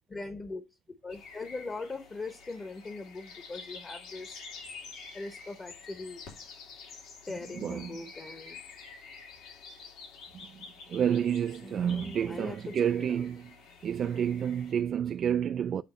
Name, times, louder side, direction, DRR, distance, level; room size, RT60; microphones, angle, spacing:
voice 1, 0.1-0.6 1.0-4.4 5.1-6.2 7.3-8.6 11.6-13.2, left 3 dB, 25° left, 1.0 m, -40 dB
sound 1, 1.1-14.7, left 4 dB, 80° left, 3.4 m, -49 dB
voice 2, 7.5-8.0 10.4-13.5 13.8-15.8, right 8 dB, 50° right, 0.3 m, -30 dB
8.6 x 3.5 x 5.5 m
cardioid pair, 125°, 0 cm